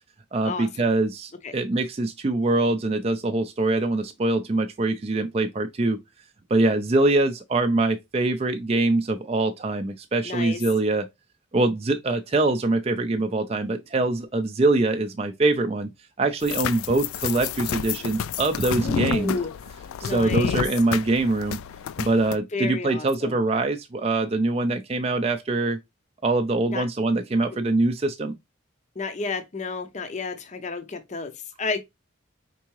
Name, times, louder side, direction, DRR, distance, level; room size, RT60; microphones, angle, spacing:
voice 1, 0.3-6.0 6.5-11.1 11.5-15.9 16.2-19.4 20.0-21.6 22.0-25.8 26.2-28.3, right 2 dB, 30° right, 0.4 m, -23 dB
voice 2, 10.3-10.6 18.7-19.5 20.0-20.6 22.5-23.3 26.7-26.8 29.0-31.3 31.6-31.9, left 4 dB, 35° left, 0.5 m, -31 dB
sound 1, 16.4-22.4, left 8 dB, 85° left, 0.3 m, -30 dB
4.6 x 3.5 x 3.0 m
head